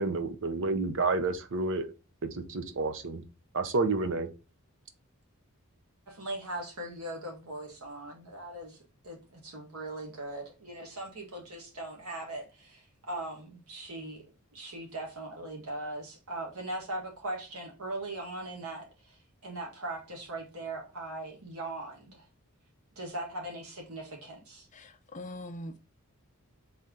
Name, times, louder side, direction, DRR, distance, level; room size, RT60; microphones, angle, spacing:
voice 1, 0.0-1.9 2.2-3.2 3.5-4.3, right 3 dB, 60° right, 0.7 m, -30 dB
voice 2, 6.1-14.2 14.5-22.3 22.9-24.7, right 2 dB, 80° right, 1.6 m, -40 dB
voice 3, 24.7-25.8, left 1 dB, 35° left, 0.5 m, -42 dB
4.2 x 3.3 x 3.7 m
head